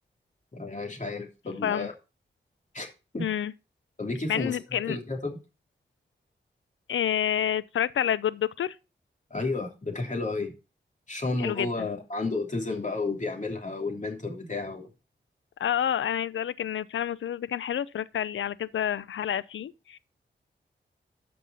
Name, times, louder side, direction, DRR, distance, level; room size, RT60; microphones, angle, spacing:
voice 1, 0.5-1.9 2.7-2.9 3.1-3.3 4.0-5.4 9.3-10.5 11.1-14.9, left 3 dB, 40° left, 3.0 m, -32 dB
voice 2, 3.2-3.5 4.3-5.0 6.9-8.8 11.4-11.9 15.6-20.0, left 9 dB, 80° left, 0.5 m, -29 dB
12.5 x 5.5 x 4.1 m
cardioid pair, 45°, 20 cm